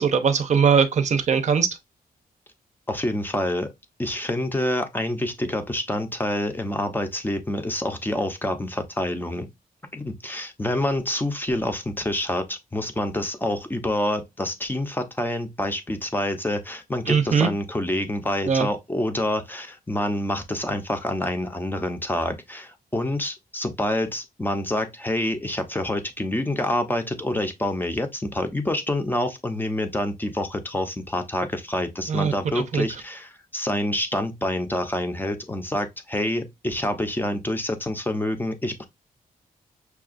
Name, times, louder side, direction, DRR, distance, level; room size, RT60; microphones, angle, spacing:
voice 1, 0.0-1.7 17.1-17.5 18.5-18.7 32.1-32.3 32.7-32.8, right 6 dB, 50° right, 0.6 m, -20 dB
voice 2, 2.9-3.7 4.0-9.5 9.9-38.9, left 1 dB, 15° left, 0.6 m, -27 dB
5.7 x 2.3 x 2.4 m
wide cardioid pair, 130°, 15 cm